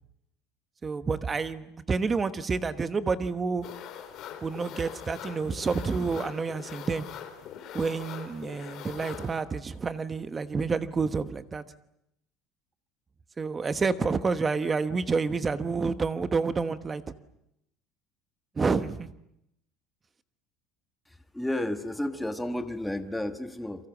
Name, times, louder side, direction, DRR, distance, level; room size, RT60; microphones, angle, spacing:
voice 1, 0.8-3.7 4.4-7.1 7.7-11.6 13.4-17.0 18.5-19.1, right 4 dB, 20° right, 12 dB, 1.2 m, -29 dB
sound 1, 3.6-9.4, left 9 dB, 45° left, 3.9 m, -42 dB
voice 2, 21.3-23.9, left 1 dB, 5° left, 8 dB, 1.3 m, -32 dB
29.5 x 23.5 x 7.3 m, 0.81 s
cardioid pair, 160°, 0 cm